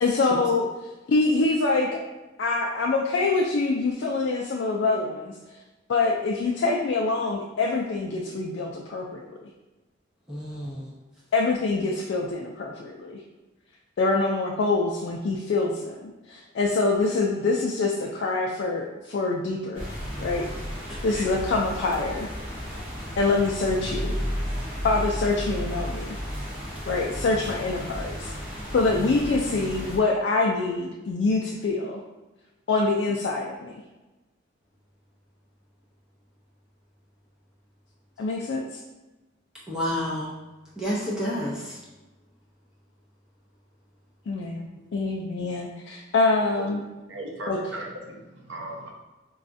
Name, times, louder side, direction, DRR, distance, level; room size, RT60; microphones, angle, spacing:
voice 1, 0.0-0.7 1.1-2.0 2.4-5.3 5.9-9.5 11.3-13.2 14.0-19.8 20.2-20.5 20.8-22.3 23.2-24.2 24.8-26.2 26.9-28.3 28.7-32.0 32.7-33.8 38.2-38.8 44.3-44.7 44.9-46.8 47.5-47.6, left 3 dB, 65° left, -2 dB, 0.3 m, -25 dB
voice 2, 10.3-10.9 20.9-21.0 39.7-40.3 40.8-41.8, equal, 5° right, -8 dB, 0.5 m, -29 dB
sound 1, 19.7-30.0, equal, 30° right, 1.2 m, -33 dB
voice 3, 47.1-48.9, right 1 dB, 70° right, 0 dB, 0.7 m, -37 dB
4.0 x 2.3 x 2.5 m, 1.1 s
head